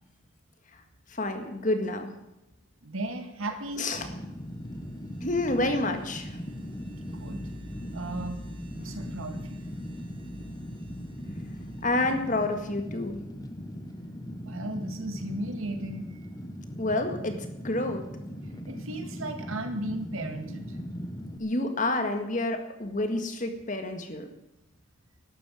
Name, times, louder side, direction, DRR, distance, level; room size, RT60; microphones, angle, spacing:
voice 1, 1.1-2.1 3.8-4.1 5.2-6.4 11.8-13.2 16.8-18.0 21.4-24.3, left 2 dB, 35° left, 6 dB, 1.8 m, -29 dB
voice 2, 2.8-3.9 7.1-7.4 7.9-8.4 8.7-9.7 14.5-16.2 18.7-20.8, right 1 dB, 80° right, 5 dB, 2.2 m, -35 dB
sound 1, 3.3-13.9, equal, 25° right, 1.5 m, -49 dB
Fire, 3.9-21.4, equal, 20° left, 1.0 m, -39 dB
12.5 x 11.5 x 7.6 m, 0.92 s
head